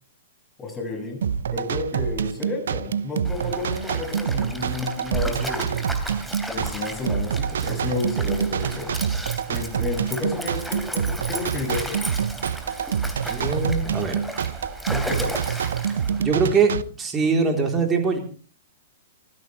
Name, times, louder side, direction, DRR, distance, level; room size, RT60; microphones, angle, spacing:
voice 1, 0.6-5.9 6.5-9.0 9.5-12.1 14.9-15.7, left 3 dB, 15° left, 2 dB, 7.7 m, -31 dB
sound 1, 1.2-16.8, right 7 dB, 65° right, 0.8 m, -27 dB
Stream, 3.2-16.3, equal, ahead, 3.2 m, -35 dB
voice 2, 13.3-14.2 16.2-16.7 17.0-18.2, right 5 dB, 20° right, 3 dB, 4.0 m, -22 dB
25.0 x 15.5 x 3.5 m, 0.39 s
figure-of-eight pair, 110°, 0 cm